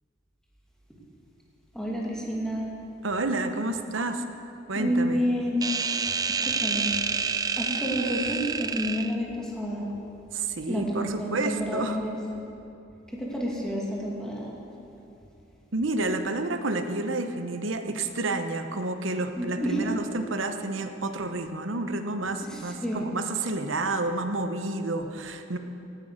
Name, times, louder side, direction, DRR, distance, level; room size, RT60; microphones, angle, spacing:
voice 1, 1.7-2.7 4.8-5.7 6.4-6.9 7.6-9.9 10.7-12.2 13.1-14.6 19.3-19.9 22.4-23.0, equal, 5° left, -4 dB, 2.5 m, -29 dB
voice 2, 3.0-4.2 4.7-5.2 10.3-12.0 15.7-25.6, right 2 dB, 80° right, 7 dB, 1.0 m, -30 dB
sound 1, 5.6-9.2, right 5 dB, 20° right, 0.4 m, -28 dB
17.5 x 9.1 x 6.6 m, 2.8 s
head